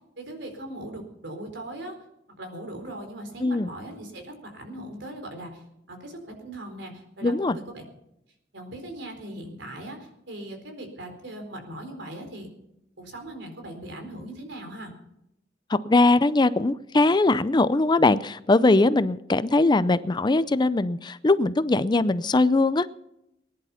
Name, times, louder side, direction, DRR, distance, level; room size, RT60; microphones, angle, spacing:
voice 1, 0.2-2.0 2.4-5.6 5.9-7.8 8.5-12.5 13.0-14.9, right 1 dB, 70° right, 4 dB, 4.3 m, -39 dB
voice 2, 7.2-7.6 15.7-22.9, left 2 dB, 25° left, 15 dB, 0.5 m, -21 dB
20.5 x 11.0 x 5.7 m, 0.81 s
head